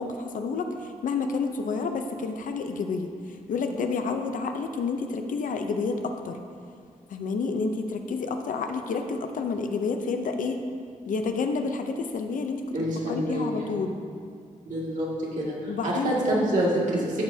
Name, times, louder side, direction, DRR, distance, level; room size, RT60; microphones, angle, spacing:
voice 1, 0.0-6.4 7.1-10.6 11.1-12.6 13.1-14.0 15.7-16.2, left 4 dB, 75° left, 6 dB, 0.7 m, -29 dB
voice 2, 12.7-13.7 14.7-15.1 15.4-17.2, right 1 dB, 65° right, -5 dB, 2.2 m, -27 dB
12.5 x 7.0 x 2.8 m, 2.1 s
wide cardioid pair, 150°, 14 cm